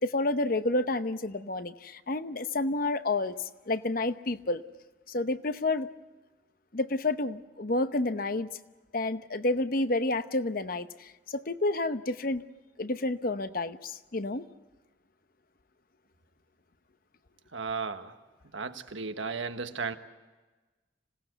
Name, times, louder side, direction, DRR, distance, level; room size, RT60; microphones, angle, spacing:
voice 1, 0.0-4.6 5.1-5.9 6.7-8.5 8.9-12.4 12.8-14.5, left 2 dB, 50° left, 11 dB, 0.9 m, -30 dB
voice 2, 17.5-18.1 18.5-20.0, right 4 dB, 85° right, 8 dB, 1.4 m, -34 dB
26.5 x 18.0 x 8.0 m, 1.2 s
head